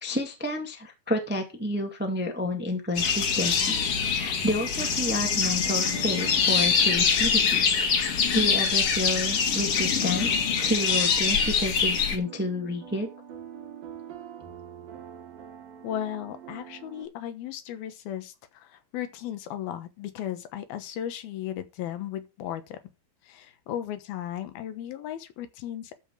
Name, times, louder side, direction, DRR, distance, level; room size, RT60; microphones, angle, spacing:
voice 1, 0.0-3.8 4.1-7.7 8.0-8.1 8.3-13.1, left 1 dB, 5° right, 1.0 m, -30 dB
sound 1, 2.9-17.1, right 8 dB, 75° right, 3.9 m, -46 dB
sound 2, 3.0-12.2, left 6 dB, 50° left, 2.3 m, -24 dB
voice 2, 15.8-22.8 23.2-26.0, left 11 dB, 90° left, 3.1 m, -36 dB
12.5 x 5.7 x 4.7 m
omnidirectional pair, 4.2 m